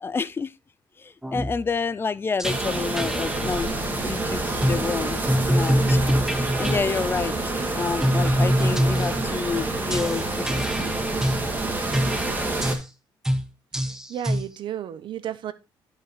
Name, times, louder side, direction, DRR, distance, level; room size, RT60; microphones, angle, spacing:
voice 1, 0.0-0.5 1.0-5.2 5.5-6.0 6.3-7.3 7.7-10.9, left 5 dB, 25° left, 0.5 m, -29 dB
sound 1, 1.2-1.6 2.4-3.6 4.6-4.9 5.3-6.9 8.0-9.3 9.9-11.5 11.9-12.9 13.2-13.5 13.7-14.5, equal, 5° right, 1.0 m, -24 dB
sound 2, 2.4-12.8, right 2 dB, 20° right, 1.9 m, -27 dB
voice 2, 13.8-15.5, right 10 dB, 70° right, 0.9 m, -33 dB
11.0 x 5.5 x 3.2 m
cardioid pair, 100°, 9 cm